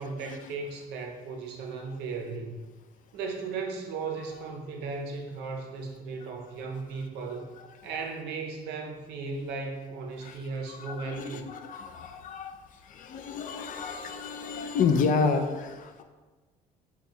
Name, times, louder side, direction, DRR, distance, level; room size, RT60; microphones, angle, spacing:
voice 1, 0.0-2.6 3.1-7.5 7.8-11.5, right 4 dB, 85° right, 2 dB, 0.6 m, -36 dB
voice 2, 10.7-16.0, left 5 dB, 50° left, 7 dB, 0.4 m, -30 dB
3.5 x 2.3 x 4.2 m, 1.3 s
cardioid pair, 110°, 17 cm